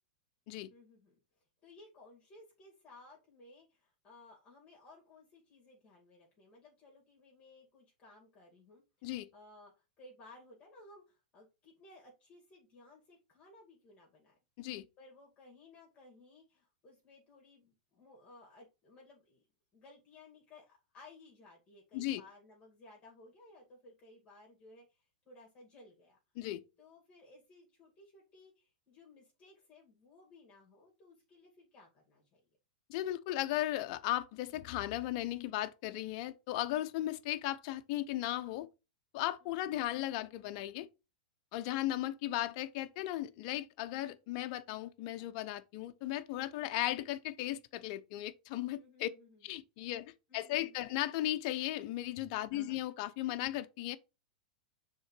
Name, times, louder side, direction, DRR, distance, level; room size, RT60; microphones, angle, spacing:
voice 1, 0.7-1.1 1.6-9.7 10.0-14.4 15.0-19.5 19.7-26.2 26.8-32.4 39.4-39.5 48.8-49.4 50.3-50.8 52.5-52.8, left 2 dB, 25° left, 2.3 m, -59 dB
voice 2, 32.9-38.7 39.1-40.9 41.5-49.1 49.4-54.0, left 14 dB, 50° left, 0.7 m, -36 dB
6.3 x 3.7 x 4.6 m
hypercardioid pair, 135°, 4 cm